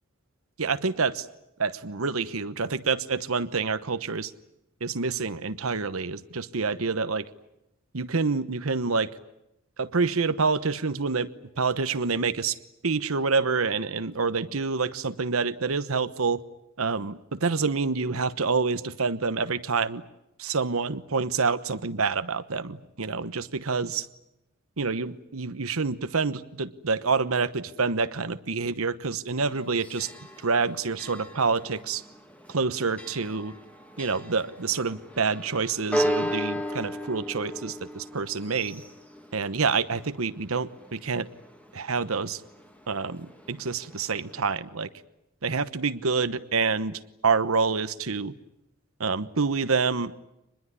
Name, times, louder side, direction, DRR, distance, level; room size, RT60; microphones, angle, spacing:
voice 1, 0.6-1.2 1.6-4.3 4.8-7.3 7.9-9.1 9.8-11.3 11.6-12.6 12.8-16.4 16.8-20.0 20.4-24.1 24.8-30.1 30.4-32.0 32.5-33.5 34.0-38.8 39.3-41.3 41.7-42.4 42.9-44.9 45.4-48.3 49.0-50.2, right 4 dB, 85° right, 12 dB, 1.1 m, -27 dB
Church bell, 29.4-44.4, equal, 5° left, 2.1 m, -36 dB
25.0 x 21.0 x 9.8 m, 0.87 s
head